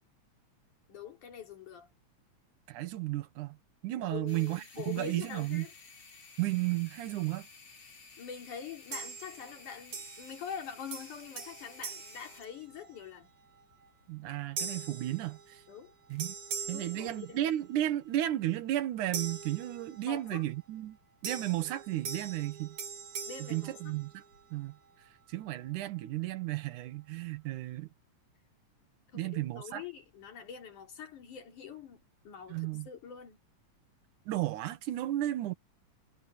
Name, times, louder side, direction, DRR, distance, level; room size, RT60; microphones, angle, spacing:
voice 1, 0.9-1.9 3.9-5.7 8.2-13.3 15.7-15.9 16.7-17.4 20.1-20.5 23.3-23.9 29.1-32.0 32.2-33.4, left 7 dB, 85° left, 4.9 m, -44 dB
voice 2, 2.7-3.6 3.8-5.7 6.4-7.5 14.1-15.6 16.1-16.4 16.7-21.0 21.2-22.8 23.4-24.2 24.5-24.8 25.3-27.9 29.1-29.8 32.5-32.9 34.3-35.5, right 14 dB, 85° right, 2.6 m, -33 dB
sound 1, 4.3-16.6 16.9-17.1 17.8-17.9, left 4 dB, 65° left, 5.6 m, -55 dB
sound 2, 8.9-9.6 9.9-10.6 10.9-13.1 13.6-13.9 14.6-15.9 16.2-17.8 19.1-20.3 21.2-24.5, right 6 dB, 70° right, 4.4 m, -42 dB
omnidirectional pair, 3.4 m